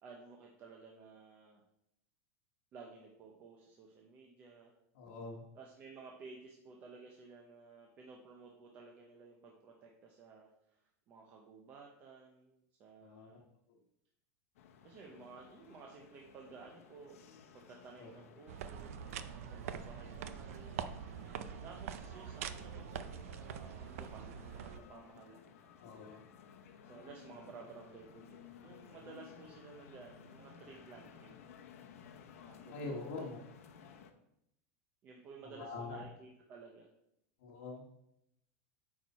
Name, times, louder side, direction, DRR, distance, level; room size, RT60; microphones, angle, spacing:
voice 1, 0.0-1.6 2.7-4.7 5.5-13.4 14.8-17.2 17.5-18.9 19.5-20.8 21.6-25.6 26.8-31.5 32.4-33.0 35.0-36.9, right 4 dB, 25° right, 0 dB, 0.7 m, -54 dB
voice 2, 4.9-5.5 13.0-13.4 13.7-13.8 18.0-18.1 25.8-26.2 32.7-33.4 33.8-33.9 35.4-36.0 37.4-37.8, left 3 dB, 55° left, -5 dB, 1.2 m, -44 dB
sound 1, 14.6-34.1, left 7 dB, 85° left, 0.9 m, -57 dB
sound 2, 18.5-24.8, right 8 dB, 80° right, 0.5 m, -44 dB
8.5 x 4.7 x 4.2 m, 0.81 s
supercardioid pair, 180°, 8 cm